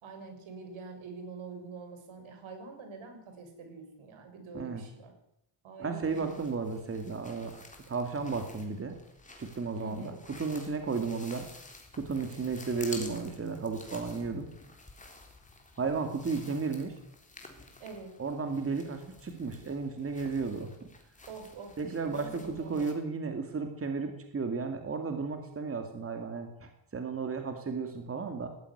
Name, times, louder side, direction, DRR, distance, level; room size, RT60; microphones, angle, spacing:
voice 1, 0.0-5.1 5.6-6.4 9.8-10.2 17.8-18.2 21.3-21.7 22.0-23.0, right 4 dB, 80° right, 6 dB, 6.4 m, -45 dB
voice 2, 5.8-9.0 9.4-11.5 11.9-14.5 15.8-17.0 18.2-20.7 21.8-28.5, right 4 dB, 30° right, 6 dB, 2.4 m, -34 dB
sound 1, 6.0-22.9, left 3 dB, 15° left, 3.7 m, -51 dB
19.0 x 14.0 x 9.9 m, 0.78 s
wide cardioid pair, 180°, 47 cm